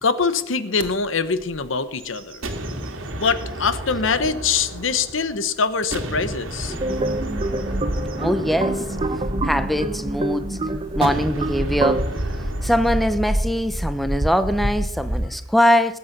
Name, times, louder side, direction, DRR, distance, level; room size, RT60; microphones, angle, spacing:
voice 1, 0.0-2.4 3.2-6.7, left 5 dB, 70° left, 13 dB, 1.0 m, -23 dB
sound 1, 0.8-0.9 1.4-1.7 2.0-3.5 4.1-4.2 5.9-15.3, equal, 45° right, 2.0 m, -29 dB
sound 2, 2.4-5.4 5.9-10.2 11.0-13.1, right 1 dB, 75° right, 2.2 m, -33 dB
sound 3, 6.8-12.0, right 2 dB, 30° right, 0.8 m, -27 dB
voice 2, 8.2-16.0, equal, ahead, 10 dB, 0.7 m, -23 dB
20.5 x 8.3 x 6.0 m, 0.88 s
head